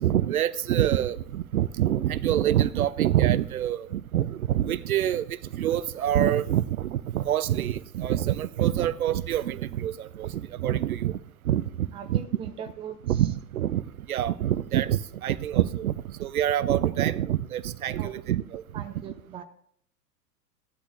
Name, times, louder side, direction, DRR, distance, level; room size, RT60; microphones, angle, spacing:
voice 1, 0.0-11.1 11.5-12.2 13.1-13.8 14.1-15.9 16.2-18.6, right 11 dB, 60° right, 0.6 m, -26 dB
voice 2, 11.9-13.2 18.0-18.1 18.7-19.4, right 8 dB, 10° right, 0.6 m, -40 dB
15.5 x 11.5 x 2.5 m
figure-of-eight pair, 100°, 50 cm